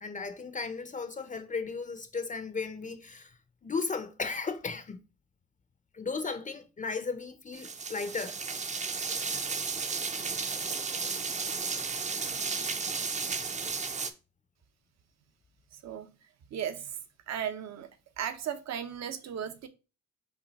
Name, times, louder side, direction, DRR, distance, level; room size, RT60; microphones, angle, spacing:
voice 1, 0.0-5.1 5.9-8.4 9.3-9.4 9.8-9.9 11.0-11.2, left 4 dB, 25° left, 0.5 m, -36 dB
sound 1, 7.5-14.1, right 5 dB, 25° right, 0.5 m, -33 dB
voice 2, 15.7-16.1 16.5-17.0 17.3-17.9 18.2-19.7, right 9 dB, 60° right, 0.8 m, -36 dB
5.7 x 2.3 x 4.0 m
cardioid pair, 90°, 30 cm